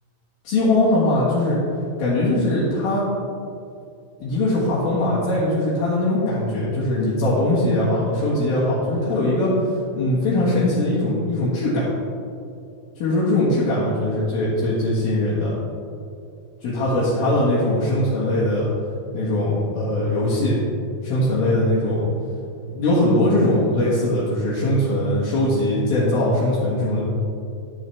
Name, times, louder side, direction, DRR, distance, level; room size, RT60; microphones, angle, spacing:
voice 1, 0.4-1.6 2.0-3.1 4.2-9.5 9.9-11.9 13.0-15.5 16.6-18.7 19.1-20.6 21.0-22.1 22.7-27.0, left 1 dB, 70° left, -9 dB, 3.4 m, -21 dB
12.5 x 7.3 x 3.4 m, 2.5 s
omnidirectional pair, 4.5 m